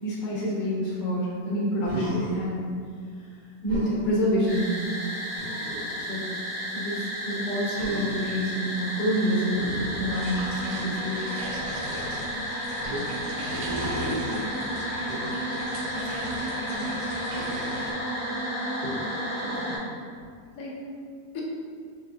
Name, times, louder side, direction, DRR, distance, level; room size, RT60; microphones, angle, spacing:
voice 1, 0.0-2.6 3.2-3.3 3.6-4.7 5.0-5.1 6.0-6.3 6.7-9.7 10.0-11.3 18.8-19.0, equal, 80° left, -5 dB, 1.7 m, -27 dB
Human voice, 1.8-2.4 3.7-4.0 5.3-6.0 7.7-8.4 9.5-10.7 12.8-13.1 15.0-15.3 17.3-17.8 19.4-19.9, right 1 dB, 90° right, 1.6 m, -36 dB
sound 1, 4.5-19.8, equal, 15° right, 1.1 m, -32 dB
sound 2, 10.1-17.9, right 1 dB, 60° right, 0.8 m, -37 dB
voice 2, 14.2-14.7 15.9-16.9 20.5-20.8 21.3-21.4, left 2 dB, 65° left, -4 dB, 1.2 m, -39 dB
4.3 x 3.3 x 2.7 m, 2.2 s
omnidirectional pair, 1.8 m